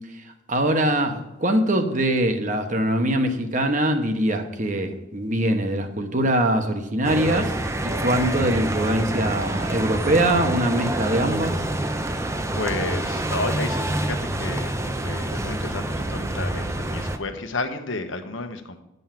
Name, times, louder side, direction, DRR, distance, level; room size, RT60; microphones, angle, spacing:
voice 1, 0.5-11.6, right 1 dB, 40° right, 6 dB, 1.0 m, -23 dB
sound 1, 7.0-17.2, right 1 dB, 15° right, 0.6 m, -27 dB
voice 2, 12.5-18.8, left 3 dB, 75° left, 7 dB, 1.0 m, -32 dB
10.0 x 5.4 x 7.5 m, 0.92 s
head